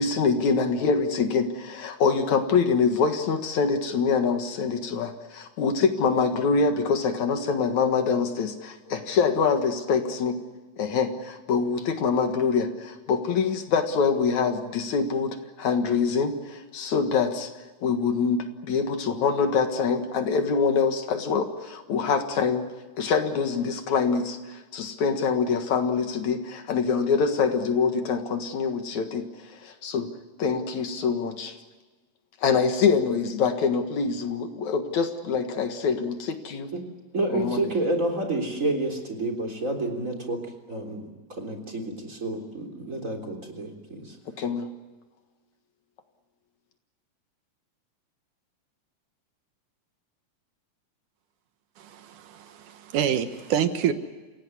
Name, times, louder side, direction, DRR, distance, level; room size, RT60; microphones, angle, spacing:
voice 1, 0.0-10.4 10.8-17.5 17.8-22.7 23.0-29.3 29.5-30.1 30.4-31.6 32.4-36.7 37.3-37.6 44.4-44.7, left 5 dB, 65° left, 7 dB, 2.9 m, -25 dB
voice 2, 37.1-40.4 40.7-44.2, right 2 dB, 25° right, 2 dB, 3.7 m, -29 dB
voice 3, 51.8-53.9, right 9 dB, 75° right, 9 dB, 2.7 m, -27 dB
29.0 x 17.0 x 9.7 m, 1.2 s
omnidirectional pair, 3.7 m